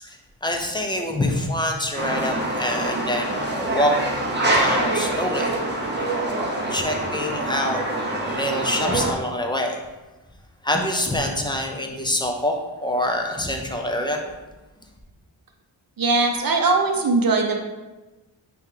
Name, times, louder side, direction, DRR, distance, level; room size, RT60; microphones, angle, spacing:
voice 1, 0.0-3.9 4.4-5.5 6.7-7.8 8.2-9.8 10.6-14.2, left 1 dB, 10° left, 2 dB, 0.6 m, -25 dB
sound 1, 2.0-9.1, right 1 dB, 25° right, 0.9 m, -25 dB
voice 2, 16.0-17.6, right 3 dB, 50° right, 3 dB, 0.8 m, -20 dB
8.6 x 3.0 x 3.8 m, 1.1 s
wide cardioid pair, 155°, 46 cm